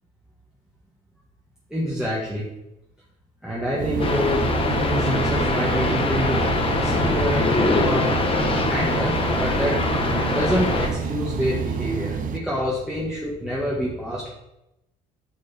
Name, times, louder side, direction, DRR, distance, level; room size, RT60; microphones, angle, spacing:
voice 1, 1.7-2.5 3.4-8.1 8.7-9.8 10.3-14.3, equal, 5° right, -6 dB, 2.0 m, -27 dB
sound 1, 3.8-12.4, right 6 dB, 50° right, 0.9 m, -28 dB
sound 2, 4.0-10.9, left 3 dB, 35° left, 1.5 m, -23 dB
9.5 x 6.4 x 4.5 m, 0.89 s
cardioid pair, 110°, 17 cm